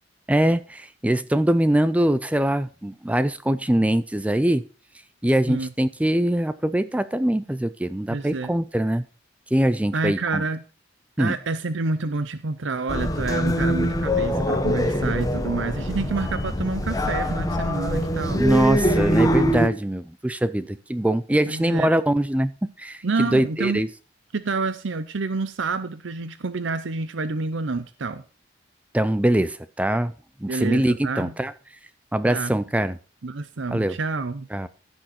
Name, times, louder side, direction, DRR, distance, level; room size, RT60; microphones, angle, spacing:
voice 1, 0.3-4.7 5.2-9.1 9.5-10.4 11.2-11.4 18.4-23.9 28.9-30.1 30.4-31.5 32.1-33.0 33.7-34.0 34.5-34.7, right 1 dB, 5° right, 14 dB, 0.4 m, -23 dB
voice 2, 8.1-8.5 9.9-10.6 11.2-18.5 21.5-21.9 23.0-23.8 24.3-28.2 30.5-31.3 32.3-32.5 33.2-34.5, right 3 dB, 70° right, 12 dB, 0.7 m, -28 dB
sound 1, 12.9-19.7, equal, 20° left, 1.0 m, -23 dB
15.0 x 6.3 x 4.3 m, 0.35 s
head